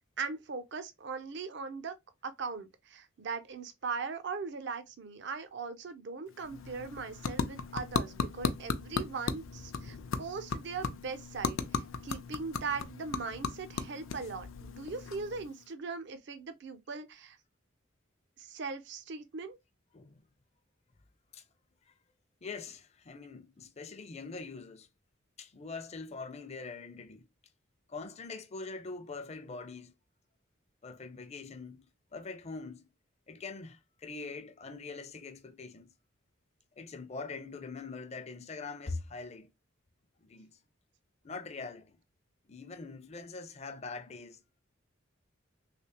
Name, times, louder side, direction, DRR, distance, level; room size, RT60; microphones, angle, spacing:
voice 1, 0.2-1.9 2.2-17.4 18.4-19.6, right 4 dB, 60° right, 0.5 m, -40 dB
sound 1, 6.3-15.7, left 5 dB, 80° left, 0.5 m, -37 dB
voice 2, 22.4-24.9 25.4-27.2 27.9-29.9 30.8-32.9 33.3-35.9 36.8-39.5 40.2-40.5 41.2-42.0 42.5-44.6, left 4 dB, 35° left, 0.5 m, -43 dB
3.3 x 3.1 x 2.8 m
head